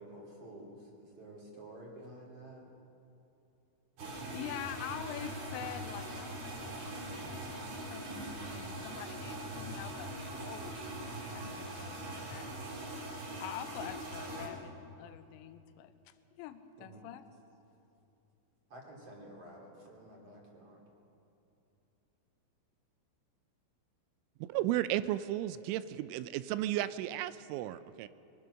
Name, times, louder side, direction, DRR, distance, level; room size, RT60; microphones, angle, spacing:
voice 1, 0.0-2.7 16.8-17.0 18.7-20.8, right 1 dB, 35° right, -2 dB, 3.5 m, -51 dB
sound 1, 4.0-14.5, right 1 dB, 55° right, 5.0 m, -42 dB
voice 2, 4.3-11.0 11.3-17.2, left 11 dB, 75° left, 10 dB, 3.0 m, -46 dB
voice 3, 24.5-28.1, right 13 dB, 85° right, 14 dB, 3.0 m, -34 dB
23.0 x 21.0 x 6.4 m, 2.8 s
omnidirectional pair, 5.6 m